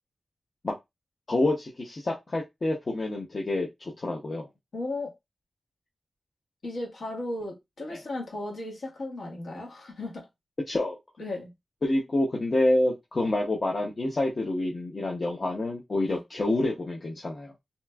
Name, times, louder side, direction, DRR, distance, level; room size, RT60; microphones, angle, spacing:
voice 1, 1.3-4.5 7.9-8.0 10.7-11.0 11.8-17.5, left 2 dB, 35° left, 0.6 m, -27 dB
voice 2, 4.7-5.1 6.6-10.3 11.2-11.5 16.1-16.2, left 2 dB, 70° left, 1.4 m, -35 dB
3.3 x 2.9 x 2.2 m
wide cardioid pair, 165°, 0 cm